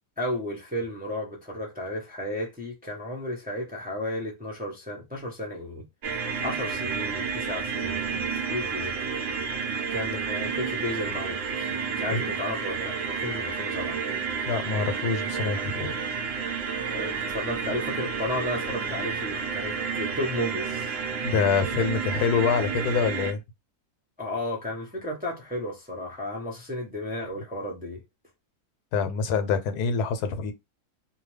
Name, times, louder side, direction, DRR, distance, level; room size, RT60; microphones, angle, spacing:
voice 1, 0.2-5.8 6.4-9.0 9.9-14.0 16.8-20.9 24.2-28.0, left 1 dB, 10° right, 0.6 m, -33 dB
sound 1, 6.0-23.3, right 6 dB, 55° right, 0.8 m, -30 dB
voice 2, 14.5-15.9 21.2-23.4 28.9-30.5, left 5 dB, 85° left, 1.2 m, -26 dB
2.7 x 2.2 x 3.2 m
omnidirectional pair, 1.6 m